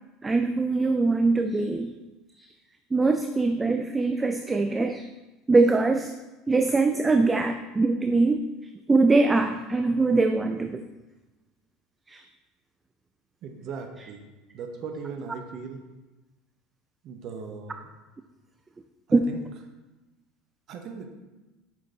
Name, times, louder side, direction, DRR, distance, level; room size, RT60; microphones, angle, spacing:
voice 1, 0.2-1.9 2.9-5.0 5.5-6.1 6.5-8.4 8.9-10.8 12.1-12.2 19.1-19.3, right 3 dB, 20° right, 7 dB, 0.6 m, -22 dB
voice 2, 13.4-14.2 14.5-15.8 17.0-17.9 19.1-19.4 20.7-21.1, right 5 dB, 50° right, 5 dB, 1.2 m, -38 dB
8.7 x 6.4 x 4.2 m, 1.1 s
figure-of-eight pair, 70°, 0 cm